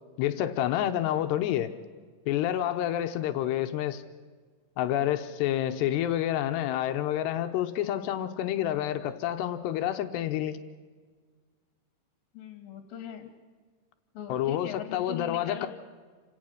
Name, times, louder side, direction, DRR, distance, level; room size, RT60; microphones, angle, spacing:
voice 1, 0.2-1.7 2.3-4.0 4.8-10.6 14.3-15.7, left 12 dB, 75° left, 8 dB, 2.8 m, -28 dB
voice 2, 12.3-13.3 14.1-15.7, left 8 dB, 60° left, 6 dB, 3.0 m, -40 dB
28.5 x 17.5 x 6.5 m, 1.5 s
omnidirectional pair, 5.2 m